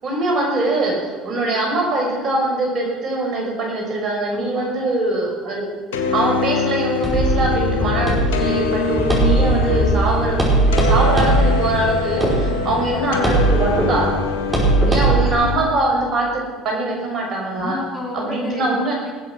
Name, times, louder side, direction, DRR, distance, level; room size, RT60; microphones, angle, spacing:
voice 1, 0.0-5.7 6.1-10.5 10.8-14.1 14.9-17.8 18.1-19.0, right 2 dB, 50° right, -1 dB, 5.8 m, -22 dB
voice 2, 4.3-4.8 12.4-12.8 14.5-14.9 17.5-19.1, left 1 dB, 20° left, -1 dB, 4.3 m, -32 dB
sound 1, 5.9-15.5, left 4 dB, 85° left, 1.8 m, -24 dB
sound 2, 7.0-15.3, right 2 dB, 15° right, 5.5 m, -19 dB
20.0 x 8.1 x 6.1 m, 1.4 s
hypercardioid pair, 80°, 0 cm